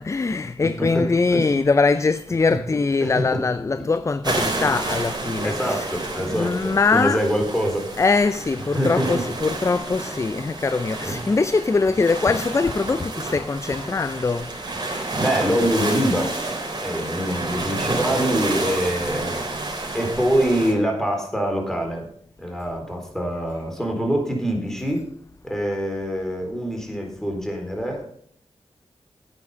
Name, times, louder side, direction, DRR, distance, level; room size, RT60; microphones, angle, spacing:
voice 1, 0.0-7.3 8.0-14.5 19.7-19.8, left 4 dB, 30° left, 0.4 m, -22 dB
voice 2, 0.8-1.7 3.0-3.4 3.7-3.9 5.4-7.9 8.7-9.2 11.0-11.4 14.9-19.4 19.9-22.1 22.4-25.0 25.4-28.1, equal, 5° left, 3.9 m, -25 dB
sound 1, 4.2-20.7, right 2 dB, 45° right, 3.9 m, -30 dB
9.8 x 9.3 x 5.5 m
cardioid pair, 60°, 10 cm